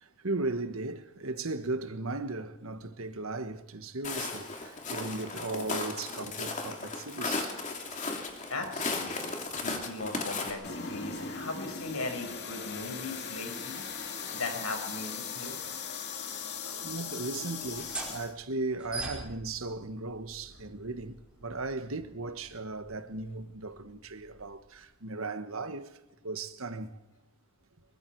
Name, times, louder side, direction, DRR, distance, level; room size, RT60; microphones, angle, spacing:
voice 1, 0.0-7.6 9.9-10.0 15.4-15.7 16.8-26.0 26.2-27.0, right 2 dB, 80° right, 1.5 m, -37 dB
Walk footsteps, 4.0-10.5, left 3 dB, 35° left, 2.9 m, -35 dB
voice 2, 8.5-13.8 14.3-15.5 16.6-16.8, left 3 dB, 85° left, 5.7 m, -38 dB
sound 1, 10.6-18.3, left 6 dB, 50° left, 2.3 m, -39 dB
sound 2, 17.6-24.9, right 2 dB, 5° right, 4.9 m, -45 dB
25.0 x 23.0 x 4.7 m
head